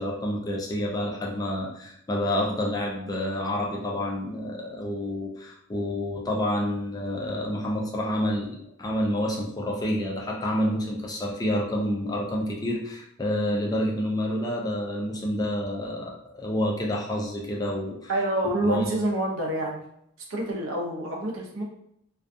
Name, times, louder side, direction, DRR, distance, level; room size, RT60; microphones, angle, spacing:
voice 1, 0.0-18.1 18.6-18.9, left 1 dB, 20° left, -2 dB, 0.4 m, -28 dB
voice 2, 18.1-19.8 20.3-21.6, right 1 dB, 70° right, 0 dB, 0.6 m, -27 dB
2.4 x 2.2 x 2.5 m, 0.73 s
head